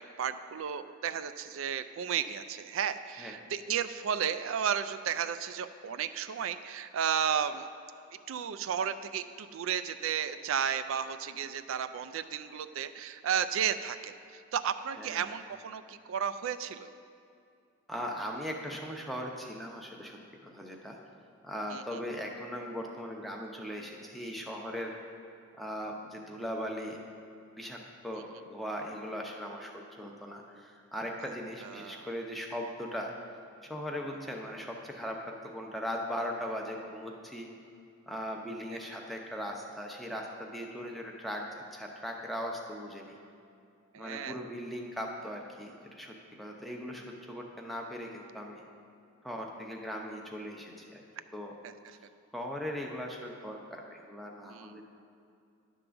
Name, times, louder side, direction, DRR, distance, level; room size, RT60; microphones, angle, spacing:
voice 1, 0.0-7.7 8.3-16.9 21.7-22.0 31.2-31.3 31.6-32.1 43.9-44.4 51.6-52.0 54.4-54.8, right 8 dB, 70° right, 11 dB, 0.3 m, -33 dB
voice 2, 15.0-15.3 17.9-21.0 21.4-24.9 25.6-27.0 27.6-27.8 28.0-33.1 33.6-37.5 38.1-43.1 44.0-48.6 49.2-51.0 51.3-51.5 52.3-54.8, equal, ahead, 0 dB, 0.7 m, -39 dB
11.0 x 3.8 x 6.9 m, 2.5 s
head